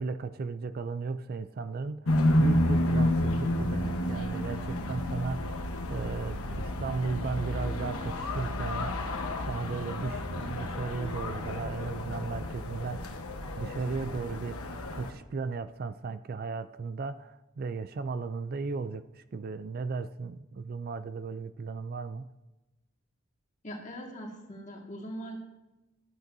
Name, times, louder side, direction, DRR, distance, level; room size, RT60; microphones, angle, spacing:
voice 1, 0.0-9.2 9.5-13.1 13.5-14.6 14.9-22.3, right 4 dB, 45° right, 13 dB, 0.3 m, -35 dB
sound 1, 2.0-15.1, left 1 dB, 85° left, 1.1 m, -30 dB
voice 2, 23.6-25.4, equal, 35° left, 0 dB, 1.9 m, -41 dB
14.5 x 12.5 x 2.7 m, 1.0 s
head